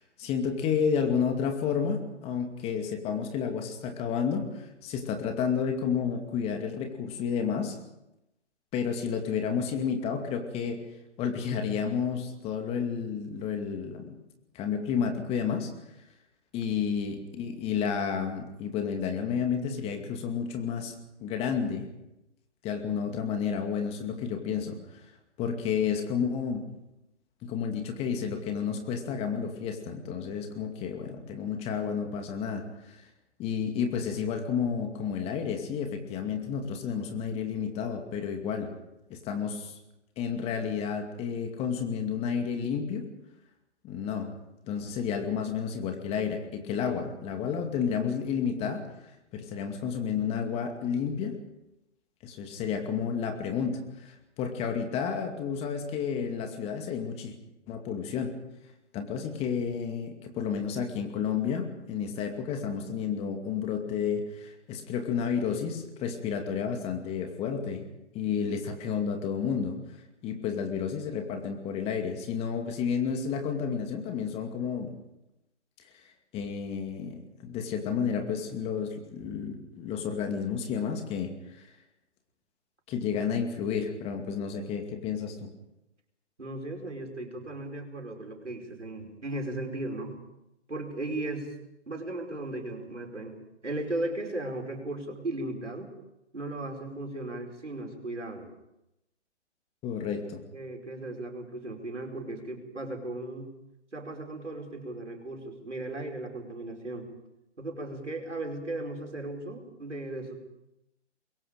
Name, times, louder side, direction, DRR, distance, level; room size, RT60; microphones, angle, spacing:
voice 1, 0.0-7.8 8.7-10.9 11.2-14.2 14.5-15.7 16.5-21.9 22.6-25.0 25.4-26.6 27.4-33.0 33.4-38.7 39.1-39.8 40.2-43.1 43.8-44.3 44.7-48.8 49.3-51.4 52.2-57.3 57.7-58.3 58.9-67.9 68.1-69.8 70.2-74.9 76.3-81.7 82.9-85.5 99.8-100.4, left 6 dB, 15° left, 5 dB, 2.3 m, -31 dB
voice 2, 86.4-90.1 90.7-91.5 91.9-95.9 96.3-98.5 100.5-103.5 103.9-107.1 107.6-110.4, right 2 dB, 85° right, 2 dB, 5.1 m, -36 dB
25.5 x 22.5 x 5.2 m, 0.89 s
figure-of-eight pair, 135°, 35 cm